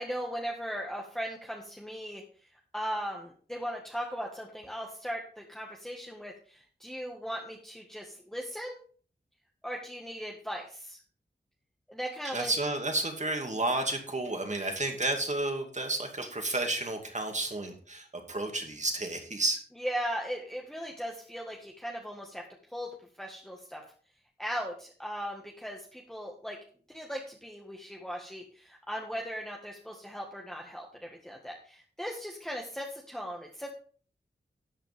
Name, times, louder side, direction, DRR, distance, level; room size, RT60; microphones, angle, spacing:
voice 1, 0.0-2.2 2.7-8.8 9.6-11.0 11.9-12.5 19.8-22.4 22.7-23.8 24.4-26.6 26.9-33.7, equal, 5° left, -1 dB, 1.7 m, -38 dB
voice 2, 12.2-19.6, right 2 dB, 45° right, 4 dB, 2.4 m, -31 dB
13.0 x 8.6 x 3.6 m, 0.44 s
wide cardioid pair, 85°, 18 cm